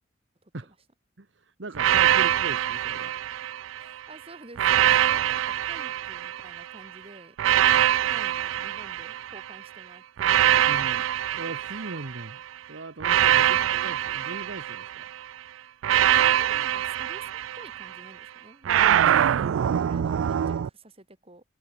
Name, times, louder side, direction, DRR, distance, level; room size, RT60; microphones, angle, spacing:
voice 1, 0.4-0.7 2.0-2.2 3.8-10.7 11.6-11.9 13.4-13.8 16.1-21.4, right 2 dB, 30° right, 4.0 m, -50 dB
voice 2, 1.2-3.1 7.7-7.9 10.7-11.0 11.3-12.4 12.7-15.1, right 2 dB, 65° right, 1.3 m, -39 dB
sound 1, 1.8-3.9 4.6-6.7 7.4-9.6 10.2-12.3 13.0-15.2 15.8-18.0 18.7-20.7, right 11 dB, 85° right, 0.3 m, -23 dB
head